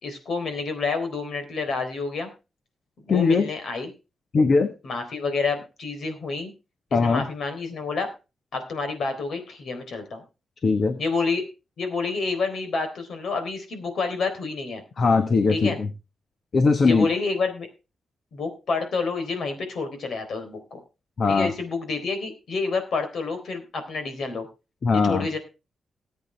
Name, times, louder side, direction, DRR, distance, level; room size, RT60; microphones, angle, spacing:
voice 1, 0.0-2.3 3.1-3.9 4.8-6.5 6.9-8.1 8.5-10.2 11.0-11.4 11.8-14.8 15.5-15.8 16.9-17.7 18.3-20.8 21.3-24.5 24.9-25.4, left 4 dB, 60° left, 7 dB, 3.7 m, -28 dB
voice 2, 3.1-3.5 4.3-4.7 6.9-7.3 10.6-11.0 15.0-15.9 16.5-17.1 21.2-21.5 24.8-25.3, left 4 dB, 45° left, 8 dB, 1.3 m, -20 dB
19.5 x 8.4 x 3.4 m, 0.29 s
wide cardioid pair, 145°, 0 cm